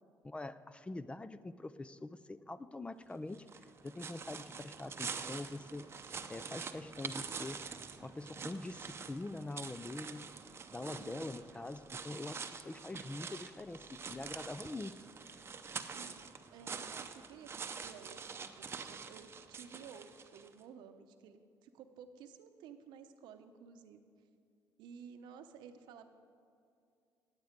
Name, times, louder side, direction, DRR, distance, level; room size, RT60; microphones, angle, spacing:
voice 1, 0.2-3.5 3.8-5.9 6.3-7.6 8.0-10.3 10.7-15.0, left 2 dB, 15° left, 14 dB, 0.4 m, -44 dB
sound 1, 3.3-20.5, right 5 dB, 35° right, 0.7 m, -46 dB
voice 2, 11.0-11.6 15.9-20.1 20.3-24.0 24.8-26.1, right 7 dB, 90° right, 8 dB, 0.8 m, -54 dB
17.0 x 8.4 x 5.2 m, 2.4 s
cardioid pair, 105°, 7 cm